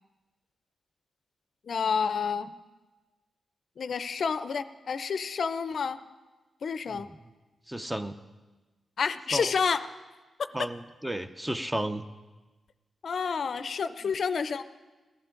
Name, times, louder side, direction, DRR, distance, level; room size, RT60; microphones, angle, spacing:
voice 1, 1.7-2.5 3.8-6.0 6.6-7.1 9.0-9.8 13.0-14.6, left 6 dB, 65° left, 12 dB, 0.5 m, -29 dB
voice 2, 7.7-8.1 9.3-9.5 10.5-12.0, right 1 dB, 10° right, 10 dB, 0.5 m, -33 dB
18.0 x 11.5 x 3.8 m, 1.2 s
wide cardioid pair, 105°, 0 cm